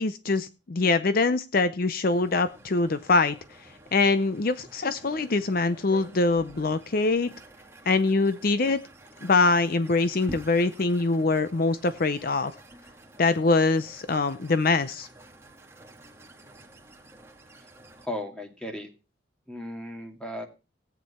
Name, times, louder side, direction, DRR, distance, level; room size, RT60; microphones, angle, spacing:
voice 1, 0.0-7.3 7.9-8.8 9.2-12.5 13.2-15.1, left 3 dB, 50° left, 12 dB, 0.6 m, -24 dB
sound 1, 2.1-18.1, right 1 dB, 15° right, 1.8 m, -49 dB
voice 2, 18.0-18.9 19.5-20.5, left 1 dB, 5° left, 3 dB, 2.3 m, -36 dB
16.5 x 9.1 x 4.3 m, 0.32 s
head